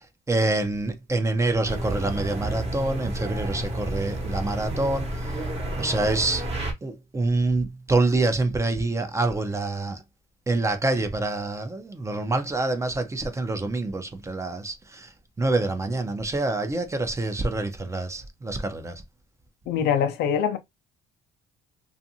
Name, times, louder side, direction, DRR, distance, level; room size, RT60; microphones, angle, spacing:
voice 1, 0.0-5.3 5.8-6.5 6.8-10.0 10.5-15.1 15.4-19.0, right 2 dB, 15° right, 0.6 m, -26 dB
sound 1, 1.6-6.7, right 1 dB, 35° right, 1.0 m, -31 dB
voice 2, 19.7-20.6, left 8 dB, 80° left, 0.5 m, -23 dB
2.5 x 2.5 x 2.7 m
cardioid pair, 110°, 17 cm